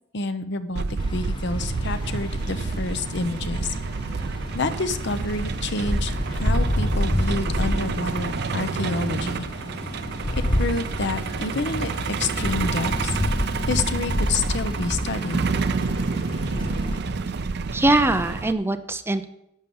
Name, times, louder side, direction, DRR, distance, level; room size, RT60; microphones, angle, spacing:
voice 1, 0.1-0.8 1.1-3.8 4.5-9.5 10.3-11.9 12.2-13.2 13.7-15.5, left 3 dB, 65° left, 11 dB, 0.8 m, -28 dB
Truck, 0.8-18.5, right 4 dB, 60° right, 0.5 m, -29 dB
sound 1, 1.0-17.0, equal, 25° left, 0.8 m, -29 dB
voice 2, 17.7-19.2, right 2 dB, 10° right, 9 dB, 0.6 m, -22 dB
11.0 x 8.3 x 5.5 m, 0.80 s
head